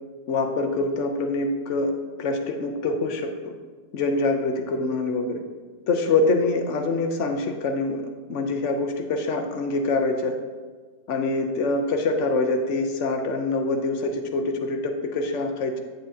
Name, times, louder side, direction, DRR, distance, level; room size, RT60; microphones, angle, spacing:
voice 1, 0.3-1.9 2.2-3.6 3.9-5.4 5.9-8.0 8.3-10.4 11.1-15.8, left 3 dB, 70° left, 4 dB, 0.7 m, -25 dB
9.1 x 8.4 x 2.7 m, 1.5 s
omnidirectional pair, 2.0 m